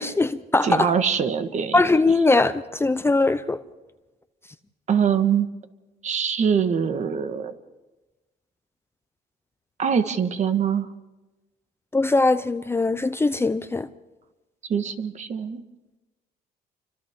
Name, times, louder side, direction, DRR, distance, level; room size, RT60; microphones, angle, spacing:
voice 1, 0.0-0.9 1.7-3.6 11.9-13.9, left 3 dB, 15° left, 0.6 m, -21 dB
voice 2, 0.6-1.8 4.9-5.5 6.0-7.5 9.8-10.9 14.7-15.6, right 7 dB, 45° right, 1.4 m, -23 dB
29.5 x 25.5 x 3.7 m
cardioid pair, 110°, 17 cm